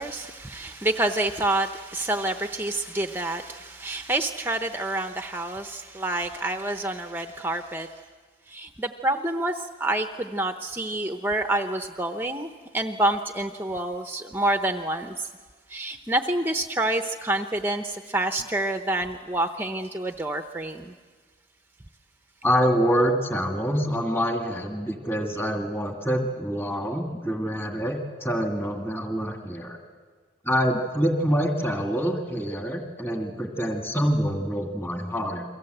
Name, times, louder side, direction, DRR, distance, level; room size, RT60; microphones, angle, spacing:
voice 1, 0.0-8.0 8.5-15.3 15.7-20.9, right 1 dB, 10° right, 6 dB, 0.7 m, -28 dB
voice 2, 22.4-29.8 30.4-35.4, equal, 10° left, 2 dB, 2.0 m, -26 dB
29.5 x 23.0 x 7.9 m, 1.5 s
head